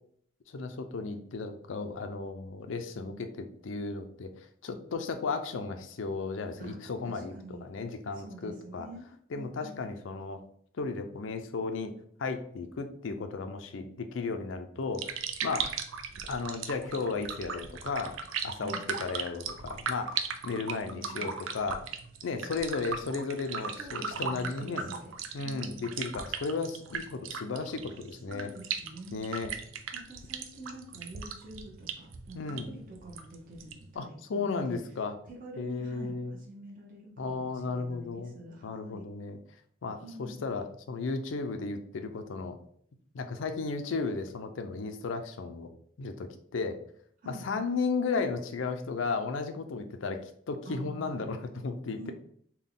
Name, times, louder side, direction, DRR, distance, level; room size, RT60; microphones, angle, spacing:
voice 1, 0.5-4.3 4.6-7.3 7.6-8.9 9.3-10.4 10.8-11.9 12.2-15.1 15.4-15.7 16.3-18.2 18.4-18.7 19.0-21.9 22.2-24.9 25.3-28.5 29.1-29.5 32.3-32.7 34.0-35.1 35.6-36.3 37.2-38.3 38.6-39.4 39.8-42.6 43.1-45.7 46.0-46.8 47.3-52.1, left 4 dB, 70° left, 7 dB, 0.4 m, -34 dB
voice 2, 7.1-7.7 8.1-9.8 18.6-18.8 20.8-21.4 23.8-25.1 28.3-29.3 29.9-34.8 35.3-39.0 40.0-40.5 47.2-47.5 50.6-51.2 51.9-52.1, right 1 dB, 45° right, -2 dB, 0.8 m, -47 dB
sound 1, 14.8-33.9, right 6 dB, 80° right, 0.4 m, -38 dB
3.6 x 2.2 x 3.8 m, 0.62 s
head